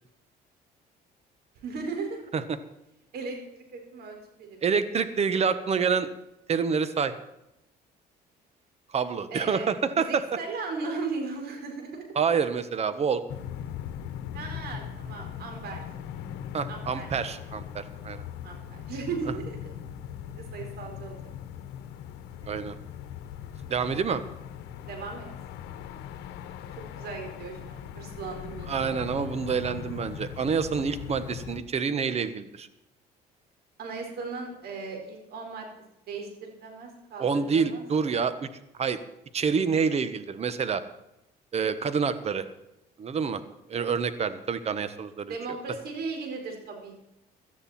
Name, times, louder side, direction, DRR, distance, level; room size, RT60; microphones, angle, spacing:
voice 1, 1.6-2.2 3.1-4.6 9.3-12.1 14.3-15.8 16.7-17.1 18.4-19.7 20.2-21.3 24.8-25.3 26.8-28.9 33.8-35.6 36.1-37.8 45.3-47.0, right 4 dB, 70° right, 3 dB, 4.9 m, -37 dB
voice 2, 4.6-6.1 6.5-7.1 8.9-10.2 12.1-13.2 16.5-18.2 22.4-22.8 23.7-24.2 28.7-32.7 37.2-38.5 38.8-39.0 39.3-40.8 41.5-42.4 43.0-43.4 43.7-45.3, right 6 dB, 40° right, 12 dB, 1.4 m, -27 dB
sound 1, 13.3-31.6, left 9 dB, 90° left, 1.2 m, -40 dB
17.5 x 12.5 x 4.4 m, 0.87 s
cardioid pair, 110°, 17 cm